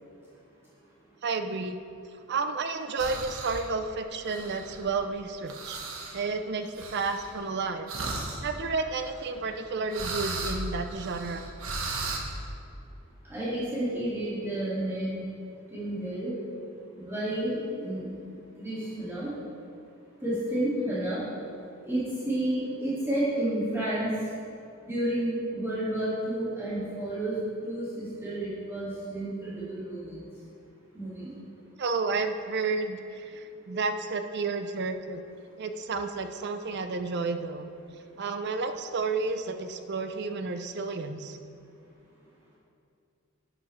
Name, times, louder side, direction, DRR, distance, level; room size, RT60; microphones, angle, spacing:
voice 1, 1.2-1.8 2.3-5.8 6.1-7.9 8.4-11.4 31.8-35.2 35.6-37.7 38.2-41.4, right 4 dB, 55° right, 8 dB, 0.6 m, -31 dB
sound 1, 3.0-3.7 4.2-5.0 5.5-6.2 6.8-7.5 7.9-8.4 9.0-9.6 9.9-12.2, right 3 dB, 70° right, 1.2 m, -36 dB
voice 2, 13.3-15.2 15.7-16.3 16.9-19.3 20.2-21.3 21.8-24.1 24.8-27.4 27.6-30.2 30.9-31.3, right 1 dB, 15° right, -11 dB, 2.3 m, -31 dB
11.0 x 9.5 x 3.3 m, 2.5 s
head